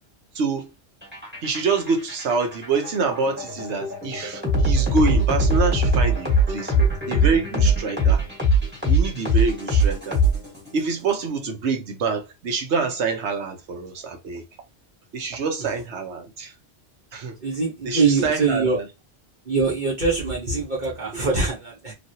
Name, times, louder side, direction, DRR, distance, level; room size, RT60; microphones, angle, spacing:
voice 1, 0.3-0.7 1.4-8.2 8.8-10.2 10.7-14.4 15.1-16.5 17.1-17.3 17.8-18.8, right 4 dB, 80° right, 1.1 m, -26 dB
sound 1, 1.0-10.8, right 1 dB, 10° right, 1.3 m, -21 dB
voice 2, 17.4-18.8 19.4-21.9, right 4 dB, 45° right, 1.0 m, -23 dB
3.1 x 2.5 x 2.7 m
omnidirectional pair, 1.1 m